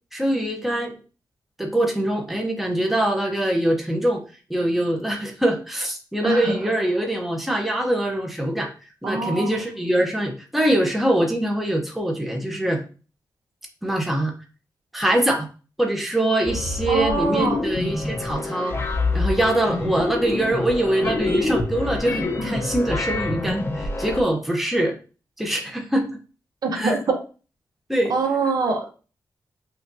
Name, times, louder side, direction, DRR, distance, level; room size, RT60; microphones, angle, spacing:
voice 1, 0.1-0.9 1.6-4.2 4.5-8.7 9.0-12.8 13.8-14.3 14.9-15.5 15.8-18.8 19.1-24.9 25.4-26.1 26.7-27.0 27.9-28.1, right 1 dB, ahead, 1 dB, 0.9 m, -23 dB
voice 2, 9.0-9.6 16.9-17.6 26.6-27.2 28.1-28.9, right 3 dB, 65° right, 2 dB, 1.0 m, -24 dB
sound 1, 16.4-24.2, left 2 dB, 35° left, 0.8 m, -27 dB
5.6 x 2.6 x 2.7 m, 0.35 s
wide cardioid pair, 100°, 7 cm